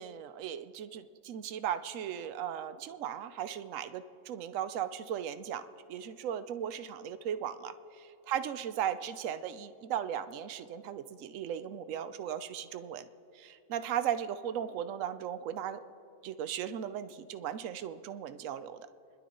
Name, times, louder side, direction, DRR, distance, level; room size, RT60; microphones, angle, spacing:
voice 1, 0.0-5.6 5.9-13.1 13.3-15.8 16.2-18.9, right 9 dB, 70° right, 12 dB, 1.0 m, -37 dB
29.0 x 11.0 x 3.9 m, 2.8 s
omnidirectional pair, 1.5 m